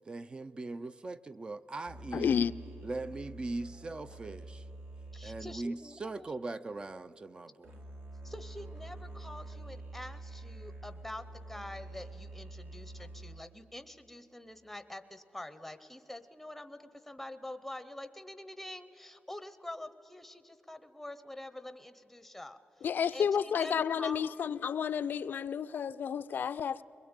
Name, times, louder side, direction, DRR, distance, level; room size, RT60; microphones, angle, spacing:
voice 1, 0.1-2.5 2.8-4.6 5.2-7.7, right 2 dB, 25° right, 13 dB, 0.5 m, -40 dB
sound 1, 1.9-6.8 7.6-13.6, right 2 dB, 70° right, 2.2 m, -47 dB
voice 2, 2.1-2.5 22.8-26.8, left 7 dB, 60° left, 16 dB, 0.5 m, -31 dB
voice 3, 5.1-6.3 8.2-22.6 23.1-24.5, left 1 dB, 5° left, 12 dB, 0.7 m, -46 dB
22.5 x 21.0 x 8.8 m, 2.9 s
wide cardioid pair, 150°, 4 cm